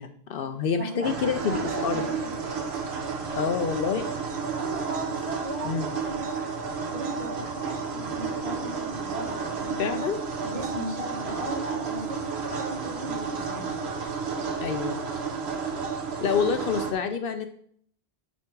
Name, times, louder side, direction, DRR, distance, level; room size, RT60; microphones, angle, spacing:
voice 1, 0.0-2.1 3.3-4.1 5.6-5.9 9.8-10.2 14.6-15.0 16.2-17.5, left 6 dB, 65° left, 9 dB, 0.7 m, -27 dB
voice 2, 0.8-1.2 1.5-2.3 4.5-6.5 6.9-10.0 10.4-13.8, right 1 dB, 35° right, -2 dB, 1.9 m, -36 dB
sound 1, 1.0-16.9, right 5 dB, 85° right, 1.3 m, -32 dB
9.7 x 3.5 x 4.5 m, 0.62 s
omnidirectional pair, 1.0 m